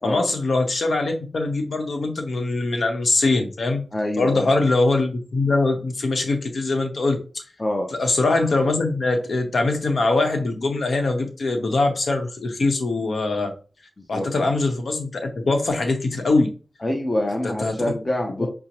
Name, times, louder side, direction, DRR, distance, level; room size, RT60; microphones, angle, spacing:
voice 1, 0.0-3.8 4.2-7.4 7.9-13.5 14.1-16.5 17.4-17.7 18.4-18.5, left 2 dB, 80° left, 4 dB, 0.8 m, -22 dB
voice 2, 3.9-4.5 7.6-7.9 14.0-14.3 16.8-18.5, left 1 dB, 30° left, 1 dB, 0.6 m, -26 dB
5.1 x 2.0 x 2.9 m, 0.35 s
wide cardioid pair, 90°, 0 cm